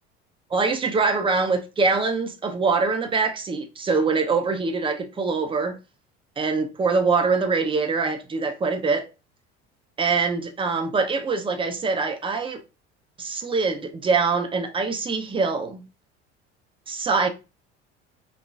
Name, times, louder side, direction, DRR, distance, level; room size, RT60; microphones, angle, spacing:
voice 1, 0.5-5.8 6.4-9.1 10.0-12.6 13.2-15.8 16.9-17.3, right 4 dB, 15° right, 0.5 m, -24 dB
4.0 x 2.3 x 2.2 m
figure-of-eight pair, 65°, 34 cm